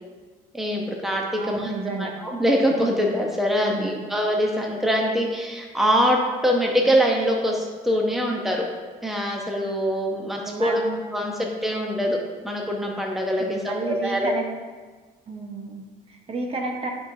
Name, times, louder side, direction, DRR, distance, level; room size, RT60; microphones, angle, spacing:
voice 1, 0.5-1.7 2.2-8.7 9.0-10.8 11.1-11.3 11.6-12.2 12.4-14.3, equal, ahead, 0 dB, 0.9 m, -23 dB
voice 2, 1.3-2.2 3.6-4.1 10.5-11.0 13.4-14.5 15.3-16.9, right 3 dB, 35° right, 2 dB, 1.1 m, -31 dB
11.5 x 4.8 x 2.7 m, 1.4 s
cardioid pair, 110°, 17 cm